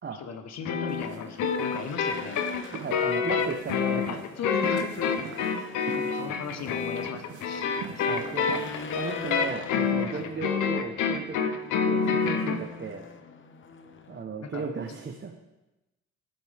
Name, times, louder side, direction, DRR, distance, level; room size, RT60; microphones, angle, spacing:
voice 1, 0.1-2.4 4.1-8.4 10.1-10.4 14.4-15.0, left 5 dB, 60° left, 7 dB, 1.4 m, -38 dB
sound 1, 0.6-12.6, left 6 dB, 80° left, 1.0 m, -27 dB
Race car auto racing / Engine, 0.6-14.2, left 5 dB, 40° left, 1.0 m, -44 dB
sound 2, 0.9-9.3, right 8 dB, 75° right, 1.0 m, -45 dB
voice 2, 2.7-4.2 7.9-8.6 9.0-11.6 11.9-13.1 14.1-15.3, right 5 dB, 35° right, 2 dB, 1.1 m, -35 dB
17.0 x 7.8 x 3.6 m, 1.0 s
cardioid pair, 90°, 30 cm